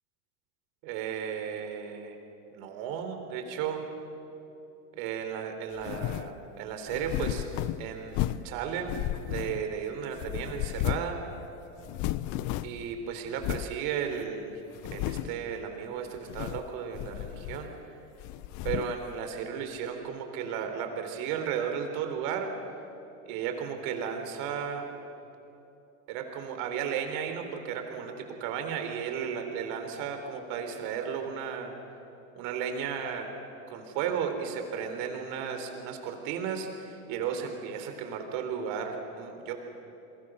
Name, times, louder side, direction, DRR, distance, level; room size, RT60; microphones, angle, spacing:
voice 1, 0.8-2.2 2.5-3.8 5.0-7.4 7.8-8.9 9.3-11.2 12.6-14.6 14.9-17.7 18.6-22.5 23.2-24.8 26.1-31.7 32.4-33.3 33.7-39.5, right 7 dB, 60° right, 5 dB, 3.9 m, -34 dB
sound 1, 5.8-6.3 6.9-8.5 8.9-9.8 10.2-11.2 11.4-11.5 11.8-12.9 13.4-13.7 14.2-14.3 14.8-15.4 16.2-16.7 16.9-17.8 18.2-19.0, left 15 dB, 50° left, 0.8 m, -33 dB
29.5 x 22.5 x 6.4 m, 2.9 s
supercardioid pair, 120°, 38 cm